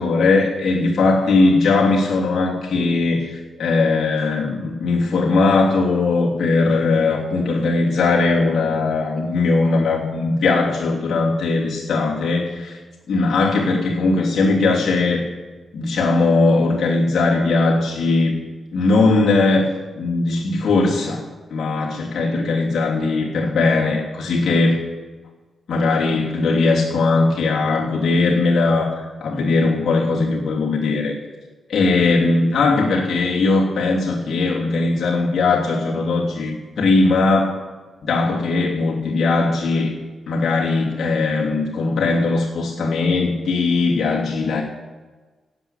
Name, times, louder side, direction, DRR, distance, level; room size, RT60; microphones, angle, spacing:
voice 1, 0.0-12.8 13.1-15.2 15.7-18.4 18.7-19.7 20.0-21.2 21.5-24.8 25.7-31.2 31.7-37.6 38.0-39.9 40.3-44.6, left 3 dB, 70° left, -4 dB, 3.1 m, -19 dB
16.5 x 7.4 x 9.2 m, 1.3 s
supercardioid pair, 50°, 0 cm